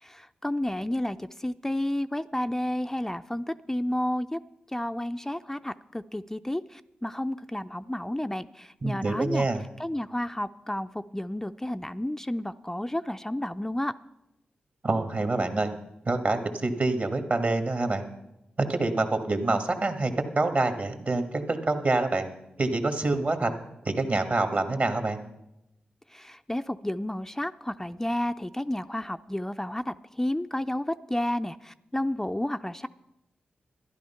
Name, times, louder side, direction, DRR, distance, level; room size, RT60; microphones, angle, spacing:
voice 1, 0.0-4.4 4.7-9.5 9.8-13.9 26.1-32.9, left 1 dB, 10° left, 10 dB, 0.4 m, -31 dB
voice 2, 8.8-9.6 14.8-15.7 16.1-18.0 18.6-22.3 22.6-23.5 23.9-25.2, right 2 dB, 55° right, 7 dB, 1.7 m, -26 dB
12.0 x 11.0 x 5.7 m, 0.89 s
supercardioid pair, 40°, 3 cm